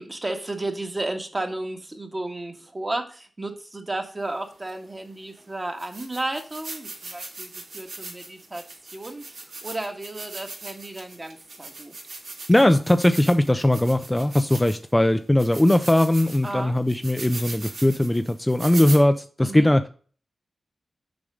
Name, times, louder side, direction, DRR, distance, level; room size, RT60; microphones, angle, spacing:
voice 1, 0.0-8.6 8.9-11.9 16.4-16.7 19.4-19.7, right 2 dB, 30° right, 1.7 m, -33 dB
sound 1, 4.7-4.8 5.4-5.5 5.8-14.9 15.4-19.0, right 2 dB, 80° right, 3.0 m, -39 dB
voice 2, 12.5-19.9, left 1 dB, 15° left, 0.5 m, -19 dB
7.0 x 5.2 x 5.1 m
cardioid pair, 65°, 0 cm